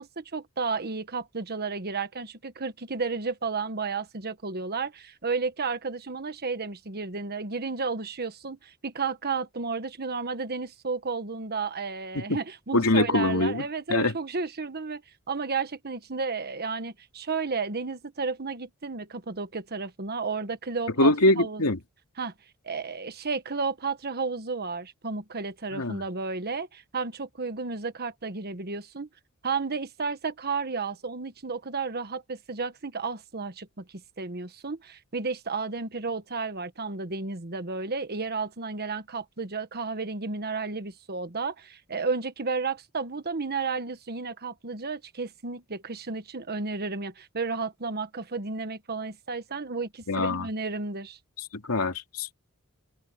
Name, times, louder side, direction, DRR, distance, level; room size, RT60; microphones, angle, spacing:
voice 1, 0.0-15.0 15.3-21.7 22.2-22.3 22.6-29.1 29.4-33.8 34.2-51.2, right 4 dB, 45° right, 1.3 m, -32 dB
voice 2, 12.7-13.6 13.9-14.1 21.0-21.8 25.7-26.0 50.1-50.5 51.5-52.3, left 2 dB, 80° left, 2.7 m, -23 dB
head